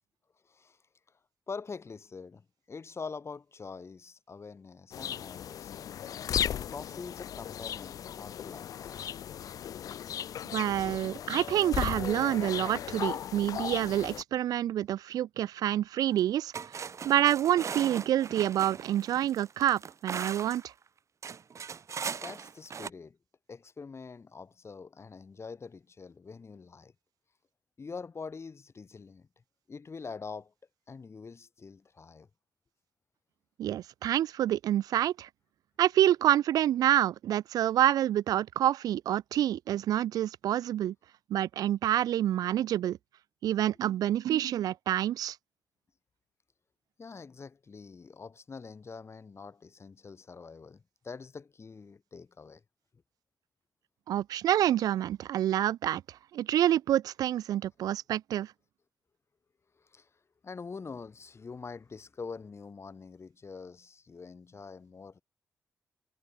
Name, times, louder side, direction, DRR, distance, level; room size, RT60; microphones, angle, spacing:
voice 1, 0.4-0.8 1.5-6.1 6.7-9.0 22.1-23.2 23.5-26.9 27.8-29.3 29.7-30.5 30.9-32.3 43.5-43.6 47.0-52.6 59.8-60.1 60.4-65.2, left 5 dB, 45° left, 4.1 m, -45 dB
sound 1, 4.9-14.2, left 10 dB, 65° left, 0.4 m, -36 dB
voice 2, 10.5-20.7 33.6-35.3 35.8-40.9 41.3-43.0 43.4-45.4 54.1-56.0 56.3-58.5, right 12 dB, 75° right, 0.3 m, -27 dB
sound 2, 16.1-16.2 16.5-20.7 21.2-22.9, right 6 dB, 50° right, 1.0 m, -39 dB
cardioid pair, 60°, 6 cm